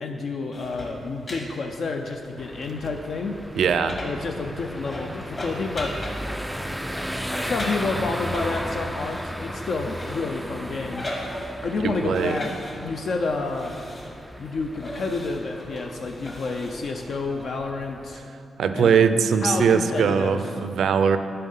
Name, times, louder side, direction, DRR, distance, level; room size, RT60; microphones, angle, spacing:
voice 1, 0.0-3.4 4.0-5.9 7.4-11.1 11.6-12.5 12.8-13.8 14.4-18.2 18.7-19.0 19.4-20.4, left 3 dB, 55° left, 3 dB, 0.5 m, -29 dB
sound 1, 0.5-17.4, left 1 dB, 30° left, 1.4 m, -39 dB
sound 2, 2.4-18.2, equal, ahead, 0.3 m, -36 dB
voice 2, 3.6-4.0 11.8-12.4 18.6-21.2, right 6 dB, 75° right, 10 dB, 0.5 m, -21 dB
11.0 x 5.5 x 5.5 m, 2.5 s
wide cardioid pair, 165°, 0 cm